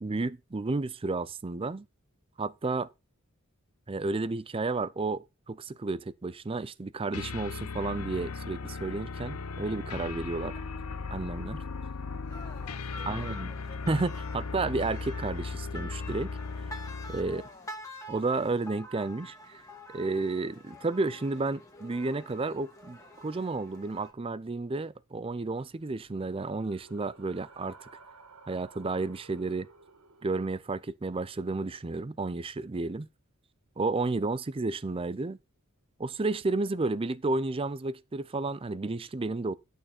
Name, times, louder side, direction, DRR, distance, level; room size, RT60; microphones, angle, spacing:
voice 1, 0.0-1.9 2.4-2.9 3.9-10.5 11.1-11.6 13.1-13.5 13.9-16.3 17.1-17.4 18.1-19.6 19.9-27.8 28.5-29.7 30.2-33.1 33.8-35.4 36.0-39.5, right 3 dB, 25° right, 0.5 m, -32 dB
sound 1, 7.1-17.5, left 4 dB, 85° left, 0.8 m, -37 dB
voice 2, 12.2-13.6 17.2-17.8, left 4 dB, 35° left, 2.8 m, -53 dB
sound 2, 12.3-24.1, left 1 dB, 15° left, 1.9 m, -47 dB
sound 3, 25.8-30.9, right 4 dB, 90° right, 1.6 m, -55 dB
11.0 x 6.6 x 4.3 m
head